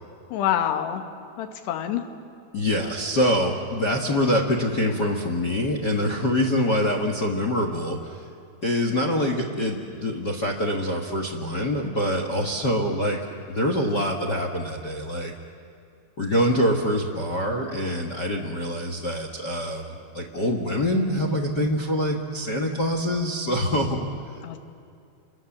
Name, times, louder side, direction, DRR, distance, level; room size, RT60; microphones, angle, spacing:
voice 1, 0.3-1.0 1.4-2.1 24.4-24.6, left 10 dB, 75° left, 6 dB, 3.6 m, -26 dB
voice 2, 2.5-8.2 8.6-13.2 13.5-15.3 16.2-24.1, left 1 dB, 60° left, 3 dB, 1.1 m, -25 dB
30.0 x 25.5 x 7.3 m, 2.4 s
omnidirectional pair, 4.9 m